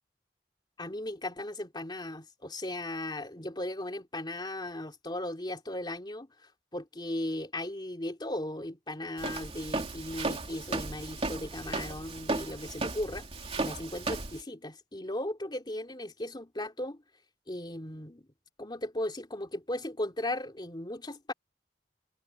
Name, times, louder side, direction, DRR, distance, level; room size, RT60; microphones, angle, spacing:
voice 1, 0.8-6.3 6.7-13.3 13.6-17.0 17.5-18.3 18.6-21.3, left 1 dB, 25° left, 3.0 m, -37 dB
Walk footsteps, 9.2-14.4, right 3 dB, 35° right, 2.7 m, -35 dB
head